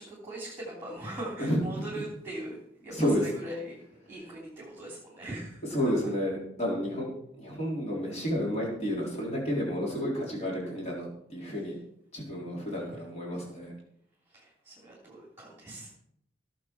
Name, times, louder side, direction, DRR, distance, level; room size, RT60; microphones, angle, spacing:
voice 1, 0.0-3.8 4.1-5.6 12.7-12.8 14.3-15.9, right 1 dB, 10° right, -4 dB, 3.4 m, -41 dB
voice 2, 2.9-3.3 5.7-7.1 7.4-11.7 12.1-13.7, equal, 35° left, -3 dB, 4.1 m, -31 dB
17.0 x 7.1 x 6.1 m, 0.73 s
head